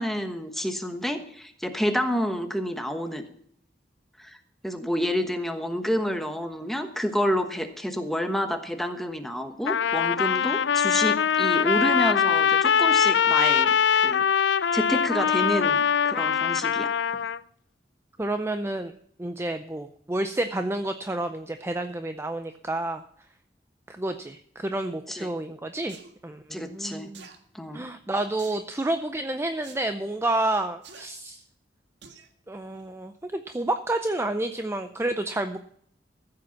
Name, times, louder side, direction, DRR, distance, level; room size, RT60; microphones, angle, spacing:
voice 1, 0.0-3.3 4.2-4.4 4.6-13.7 14.0-14.2 14.7-16.9 25.1-25.3 26.5-27.1 27.5-27.8, equal, ahead, 6 dB, 1.2 m, -29 dB
Trumpet, 9.7-17.4, left 7 dB, 90° left, 0.4 m, -22 dB
voice 2, 18.2-18.9 19.2-23.0 23.9-26.0 26.2-27.3 27.7-31.4 32.5-35.6, right 2 dB, 15° right, 8 dB, 0.5 m, -29 dB
sound 1, 25.9-26.1 27.1-27.4 28.4-28.7 29.6-29.8 30.8-31.1 32.0-32.3 32.8-32.9, right 5 dB, 85° right, 1.8 m, -47 dB
14.5 x 7.7 x 5.9 m, 0.65 s
head